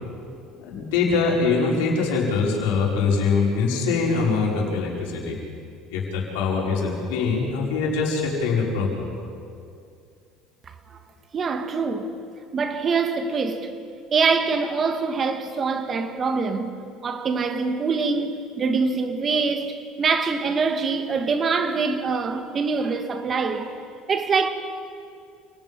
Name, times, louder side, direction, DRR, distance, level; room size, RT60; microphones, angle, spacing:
voice 1, 0.6-5.4 5.9-9.1, left 4 dB, 90° left, 5.7 m, -23 dB
voice 2, 11.3-12.1 12.5-13.7 14.1-16.7 17.0-24.5, right 4 dB, 35° right, 2.0 m, -24 dB
29.0 x 19.0 x 5.6 m
cardioid pair, 120°, 0 cm